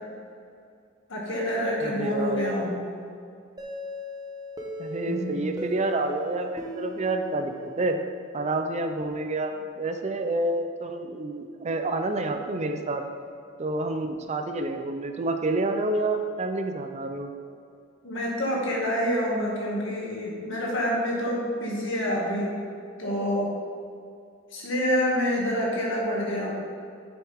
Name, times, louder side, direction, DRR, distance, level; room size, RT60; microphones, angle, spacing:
voice 1, 1.1-2.8 5.1-5.5 18.0-22.5 23.0-23.5 24.5-26.5, equal, 65° left, -3 dB, 2.1 m, -27 dB
voice 2, 1.8-2.7 4.8-8.0 8.3-13.0 13.6-17.3, right 2 dB, 35° right, 6 dB, 0.5 m, -28 dB
sound 1, 3.6-8.3, equal, 20° right, 0.9 m, -38 dB
8.3 x 7.4 x 3.6 m, 2.4 s
head